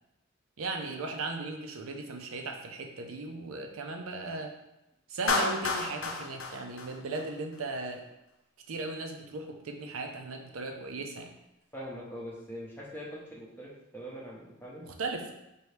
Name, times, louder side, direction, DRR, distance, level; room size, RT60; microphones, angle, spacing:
voice 1, 0.6-4.5 5.1-8.0 8.7-11.3 14.8-15.3, right 3 dB, 90° right, 3 dB, 0.6 m, -37 dB
Clapping, 5.3-7.6, left 3 dB, 75° left, 0.6 m, -31 dB
voice 2, 11.7-14.8, equal, 10° left, -5 dB, 0.6 m, -42 dB
4.5 x 2.7 x 3.2 m, 0.91 s
head